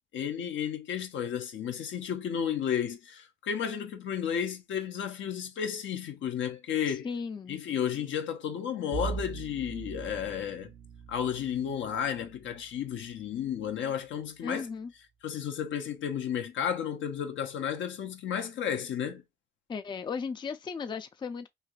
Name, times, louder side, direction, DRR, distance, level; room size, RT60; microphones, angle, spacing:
voice 1, 0.1-7.1 7.5-10.7 11.1-14.7 15.2-19.2, left 8 dB, 70° left, 0.7 m, -33 dB
voice 2, 6.9-7.6 14.4-14.9 19.7-21.5, left 5 dB, 25° left, 0.4 m, -36 dB
Bowed string instrument, 8.9-14.0, right 5 dB, 80° right, 0.5 m, -42 dB
3.2 x 2.6 x 2.3 m
cardioid pair, 90°, 20 cm